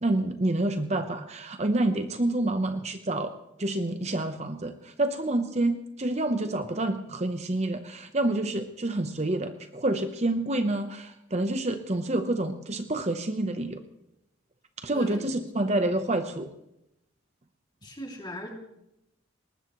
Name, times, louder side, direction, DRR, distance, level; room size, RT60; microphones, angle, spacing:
voice 1, 0.0-3.3 3.6-13.8 14.8-16.5, right 2 dB, 35° right, 8 dB, 0.8 m, -28 dB
voice 2, 14.9-16.1 17.8-18.5, equal, 20° left, 1 dB, 2.5 m, -41 dB
20.5 x 19.5 x 3.1 m, 0.84 s
head